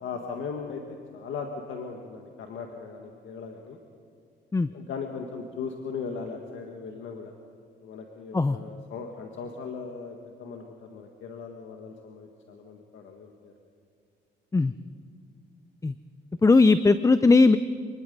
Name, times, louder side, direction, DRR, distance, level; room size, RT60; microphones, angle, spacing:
voice 1, 0.0-3.8 4.7-7.3 7.8-13.5, left 5 dB, 75° left, 3 dB, 1.7 m, -38 dB
voice 2, 16.4-17.6, left 3 dB, 15° left, 13 dB, 0.5 m, -18 dB
27.0 x 20.5 x 5.4 m, 2.3 s
cardioid pair, 90°, 20 cm